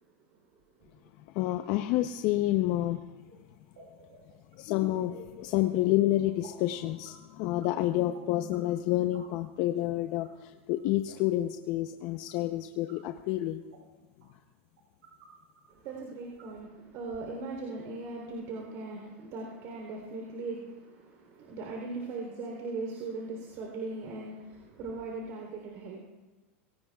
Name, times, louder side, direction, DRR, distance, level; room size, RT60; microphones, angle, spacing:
voice 1, 1.3-3.0 4.5-13.6, left 15 dB, 50° left, 6 dB, 0.8 m, -29 dB
sound 1, 3.2-3.3 3.8-5.5 6.4-6.7 6.9-7.2 7.5-7.7 8.1-8.6 8.9-9.3 9.8-9.9 10.1-11.2 12.3-12.4 12.6-13.0 13.3-13.4 13.7-13.8 14.2-14.3 14.8-15.3 15.5-15.6 15.9-16.0 16.2-16.4, right 7 dB, 85° right, 6.9 m, -55 dB
voice 2, 15.7-26.0, right 3 dB, 50° right, -1 dB, 3.6 m, -39 dB
25.0 x 18.0 x 2.4 m, 1.1 s
supercardioid pair, 125°, 7 cm